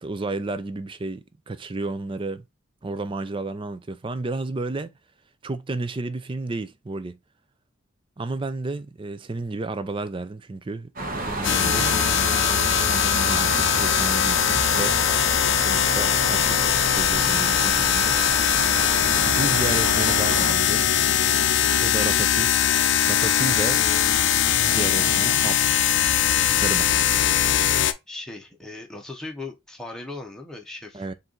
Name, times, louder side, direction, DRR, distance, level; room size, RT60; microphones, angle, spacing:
voice 1, 0.0-2.4 2.8-4.9 5.4-7.2 8.2-11.9 12.8-15.0 15.6-16.6 16.9-18.2 19.3-20.8 21.8-22.6 23.1-23.8 24.5-25.6 26.5-26.9 30.9-31.1, right 2 dB, 25° right, 0.4 m, -32 dB
sound 1, 11.0-20.5, right 2 dB, 40° right, 1.0 m, -30 dB
sound 2, 11.4-27.9, left 9 dB, 60° left, 0.6 m, -21 dB
voice 2, 28.1-31.1, left 2 dB, 5° left, 1.0 m, -38 dB
4.6 x 2.6 x 3.8 m
head